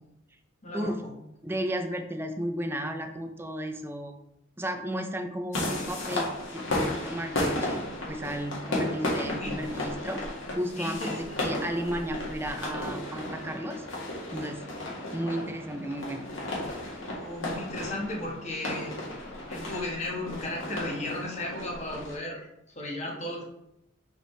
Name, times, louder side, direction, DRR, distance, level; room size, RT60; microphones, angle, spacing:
voice 1, 0.6-1.1 8.8-9.6 10.8-11.4 17.1-19.0 19.5-22.5 22.7-23.5, left 1 dB, 35° left, -2 dB, 1.5 m, -35 dB
voice 2, 1.4-4.1 4.6-10.2 10.5-11.1 11.4-13.9 14.3-14.6 15.1-16.3, equal, 10° right, 5 dB, 0.5 m, -33 dB
sound 1, 5.5-22.1, left 1 dB, 75° left, 1.9 m, -34 dB
6.3 x 5.2 x 3.3 m, 0.85 s
head